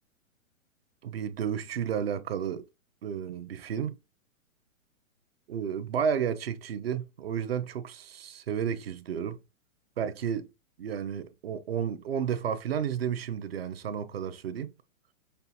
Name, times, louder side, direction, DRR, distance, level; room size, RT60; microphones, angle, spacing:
voice 1, 1.0-2.6 3.0-4.0 5.5-9.4 10.0-10.5 10.8-14.7, right 8 dB, 45° right, 0.5 m, -32 dB
5.4 x 2.3 x 2.8 m
hypercardioid pair, 165°, 41 cm